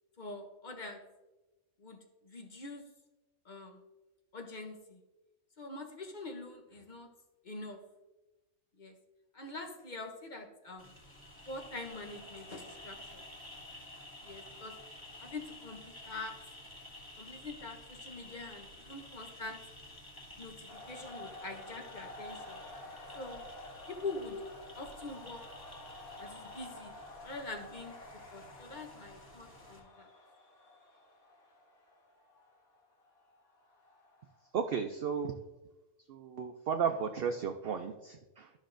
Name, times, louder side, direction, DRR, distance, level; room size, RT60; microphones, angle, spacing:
voice 1, 0.2-1.0 1.8-2.0 2.2-2.8 3.5-3.8 4.3-5.0 5.6-7.1 7.4-7.8 8.8-8.9 9.3-10.9 11.5-13.2 14.2-14.7 15.2-16.3 17.2-19.6 20.4-22.6 23.1-23.4 23.9-24.4 24.8-25.4 26.2-26.9 27.2-27.9 28.3-30.1, left 3 dB, 40° left, 4 dB, 0.7 m, -44 dB
sound 1, 10.8-29.8, left 1 dB, 15° left, 1.6 m, -52 dB
sound 2, 20.7-34.5, left 2 dB, 85° left, 2.2 m, -50 dB
voice 2, 34.5-35.4 36.1-38.5, right 6 dB, 70° right, 6 dB, 0.5 m, -34 dB
12.5 x 6.3 x 2.5 m, 1.1 s
omnidirectional pair, 1.5 m